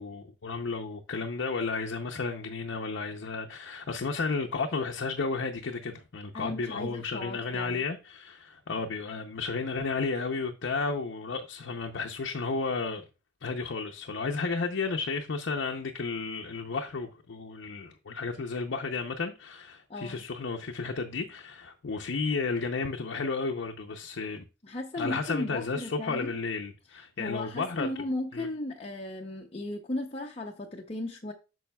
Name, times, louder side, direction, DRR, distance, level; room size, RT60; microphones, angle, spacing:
voice 1, 0.0-13.0 13.4-24.4 25.0-27.9 28.3-28.5, left 4 dB, 70° left, 0.6 m, -33 dB
voice 2, 6.3-7.9 19.9-20.2 24.6-26.4 26.9-31.3, left 1 dB, 30° left, 0.6 m, -36 dB
8.6 x 6.2 x 2.2 m
head